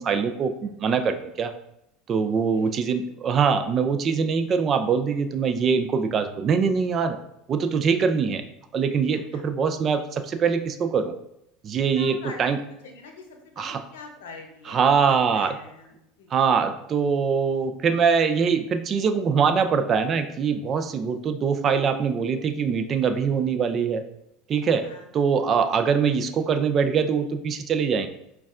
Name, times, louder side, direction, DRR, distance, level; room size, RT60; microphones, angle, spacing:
voice 1, 0.0-1.5 2.1-7.2 7.5-8.4 8.7-11.1 11.6-12.6 13.6-13.8 14.7-15.5 16.3-24.0 24.5-24.9 25.1-28.1, right 6 dB, 40° right, 8 dB, 0.4 m, -23 dB
voice 2, 2.3-2.7 9.3-9.4 11.9-12.5 12.8-16.3 17.2-17.3 24.8-25.1, left 4 dB, 85° left, 4 dB, 0.6 m, -44 dB
5.1 x 2.3 x 2.4 m, 0.81 s
supercardioid pair, 95°, 0 cm